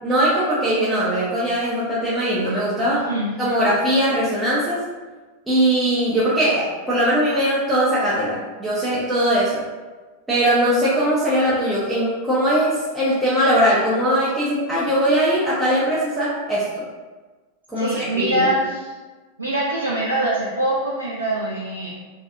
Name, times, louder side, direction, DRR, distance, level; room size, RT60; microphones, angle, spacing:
voice 1, 0.0-3.0 3.4-4.8 5.5-9.6 10.3-16.8 17.7-18.5, right 1 dB, 5° right, -10 dB, 0.5 m, -20 dB
voice 2, 2.9-3.3 17.8-18.9 19.4-21.9, right 1 dB, 80° right, -6 dB, 0.3 m, -23 dB
2.6 x 2.3 x 2.3 m, 1.3 s
figure-of-eight pair, 90°, 0 cm